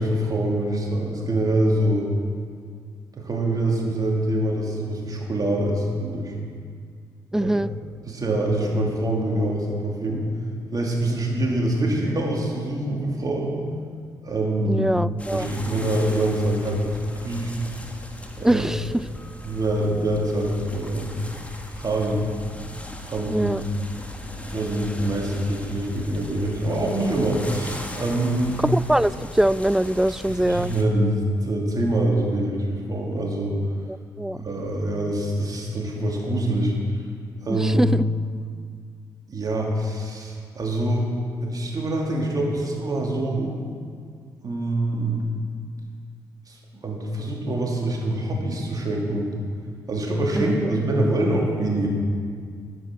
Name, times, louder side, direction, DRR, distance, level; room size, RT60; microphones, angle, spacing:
voice 1, 0.0-2.1 3.1-6.3 7.3-7.5 8.1-10.2 10.7-13.6 14.2-14.9 15.3-17.5 18.4-18.6 19.4-21.1 21.7-22.2 23.0-23.6 24.5-28.6 30.1-33.5 34.3-36.7 37.4-38.0 39.3-41.1 41.4-43.6 44.4-45.2 46.5-49.3 49.9-51.9, right 1 dB, 40° right, -1 dB, 2.9 m, -25 dB
voice 2, 7.3-7.7 14.6-15.5 18.4-18.8 23.3-23.6 28.6-30.7 34.2-34.4 37.5-38.0 50.4-50.7, right 1 dB, 5° right, 18 dB, 0.3 m, -22 dB
sound 1, 15.2-30.8, left 1 dB, 15° left, 1.6 m, -38 dB
10.0 x 9.9 x 6.2 m, 2.1 s
hypercardioid pair, 40°, 10 cm